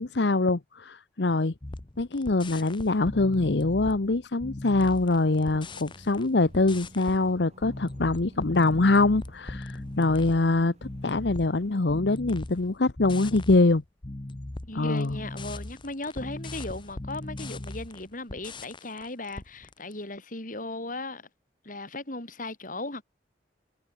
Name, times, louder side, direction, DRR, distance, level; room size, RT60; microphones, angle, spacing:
voice 1, 0.0-1.5 2.0-13.8 14.7-15.2, left 2 dB, 75° left, 0.9 m, -24 dB
sound 1, 1.6-6.3 6.5-19.9, left 2 dB, 30° left, 0.8 m, -39 dB
sound 2, 5.0-11.8, equal, 40° right, 4.6 m, -52 dB
voice 2, 14.6-21.3 21.6-23.0, left 2 dB, 50° left, 5.5 m, -37 dB
head